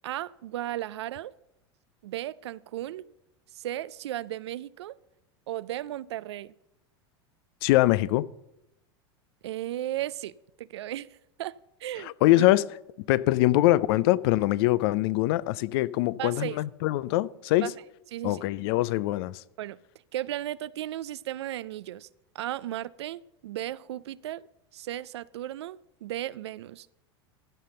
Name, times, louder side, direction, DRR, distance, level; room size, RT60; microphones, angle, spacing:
voice 1, 0.0-1.3 2.0-3.1 3.5-5.0 5.5-6.5 9.4-12.5 16.2-16.6 17.6-17.7 18.1-18.5 19.6-19.8 20.1-22.1 22.3-24.5 24.7-26.9, right 13 dB, 80° right, 0.4 m, -35 dB
voice 2, 7.6-8.3 12.0-12.6 13.1-17.7 18.2-19.4, left 17 dB, 65° left, 0.5 m, -23 dB
14.5 x 5.7 x 6.7 m
hypercardioid pair, 90°, 14 cm